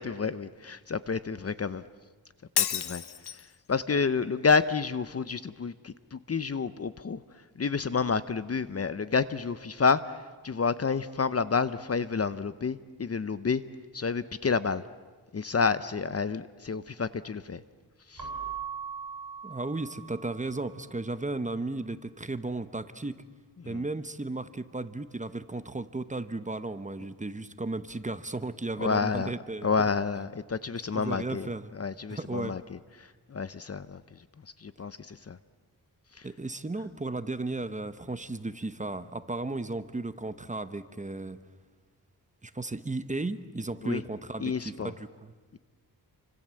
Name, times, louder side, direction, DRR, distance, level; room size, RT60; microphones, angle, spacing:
voice 1, 0.0-1.8 2.6-3.0 3.7-7.2 7.6-10.2 10.4-13.6 13.9-14.8 15.3-17.6 18.1-18.2 23.6-23.8 28.8-29.3 29.6-31.5 31.8-32.8 33.3-34.0 34.6-35.4 36.2-36.3 43.8-44.0 44.4-44.9 45.5-45.6, left 5 dB, 40° left, 14 dB, 0.8 m, -29 dB
Shatter, 2.6-3.6, left 9 dB, 85° left, 1.1 m, -30 dB
Keyboard (musical) / Bell, 18.2-20.6, right 7 dB, 50° right, 7.5 m, -39 dB
voice 2, 19.4-23.1 23.6-29.7 30.9-31.7 32.1-32.6 36.2-41.4 42.4-45.3, right 2 dB, 20° right, 11 dB, 1.1 m, -35 dB
28.5 x 25.5 x 7.7 m, 1.3 s
wide cardioid pair, 105°, 38 cm